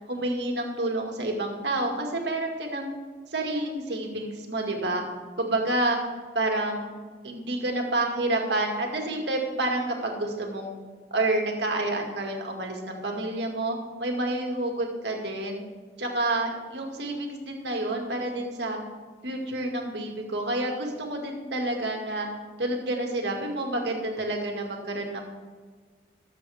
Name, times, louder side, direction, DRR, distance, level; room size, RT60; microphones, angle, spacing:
voice 1, 0.1-2.9 3.3-5.0 5.4-6.0 6.3-6.9 7.2-10.7 11.1-15.6 16.0-18.8 19.2-22.3 22.6-25.2, right 2 dB, 70° right, 1 dB, 2.1 m, -29 dB
21.0 x 7.6 x 3.5 m, 1.5 s
head